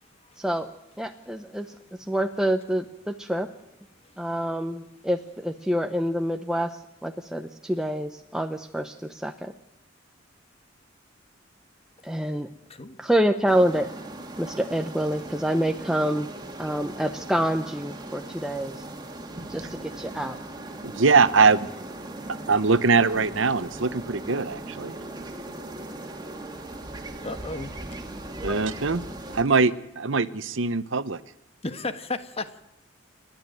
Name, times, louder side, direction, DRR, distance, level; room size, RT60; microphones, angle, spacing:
voice 1, 0.4-0.7 1.0-3.5 4.2-9.5 12.0-12.5 13.0-13.9 14.4-16.3 16.6-18.9 19.5-20.4 28.4-28.6, equal, 5° right, 5 dB, 0.7 m, -27 dB
sound 1, 13.5-29.4, right 2 dB, 20° right, 2.2 m, -39 dB
voice 2, 20.8-21.7 22.5-25.0 28.4-29.0 29.3-31.2, right 4 dB, 70° right, 15 dB, 0.9 m, -22 dB
voice 3, 27.2-27.7 31.6-32.5, left 2 dB, 30° left, 9 dB, 1.4 m, -33 dB
29.0 x 12.0 x 9.1 m, 0.90 s
head